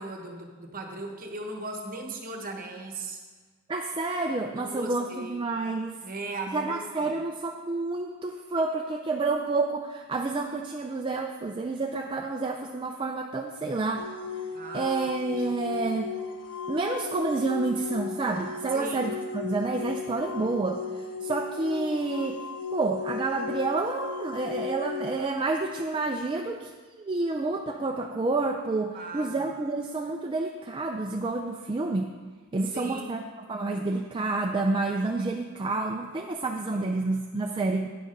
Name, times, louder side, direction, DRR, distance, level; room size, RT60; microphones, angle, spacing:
voice 1, 0.0-3.2 4.5-5.4 6.0-7.1 14.5-14.9 15.5-15.8 18.7-19.1 28.9-29.4 32.7-33.2 36.7-37.1, right 2 dB, 40° right, 3 dB, 1.1 m, -38 dB
voice 2, 3.7-6.0 6.5-14.1 14.7-16.1 16.7-22.4 22.7-32.1 32.5-37.9, right 3 dB, 20° right, 2 dB, 0.4 m, -29 dB
sound 1, 14.0-25.2, left 5 dB, 80° left, 0.6 m, -36 dB
9.4 x 6.3 x 5.2 m, 1.4 s
head